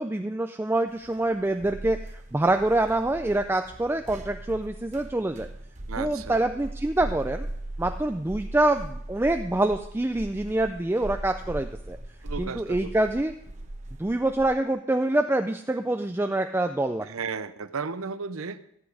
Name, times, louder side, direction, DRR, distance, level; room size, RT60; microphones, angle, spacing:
voice 1, 0.0-5.5 6.0-7.5 7.8-12.0 12.4-13.3 14.0-17.1, right 2 dB, 10° right, 6 dB, 0.3 m, -26 dB
sound 1, 1.0-14.5, right 1 dB, 35° right, 0.9 m, -39 dB
voice 2, 5.9-6.4 12.2-12.9 17.0-18.6, right 5 dB, 80° right, 13 dB, 0.7 m, -34 dB
14.5 x 8.3 x 4.8 m, 0.74 s
head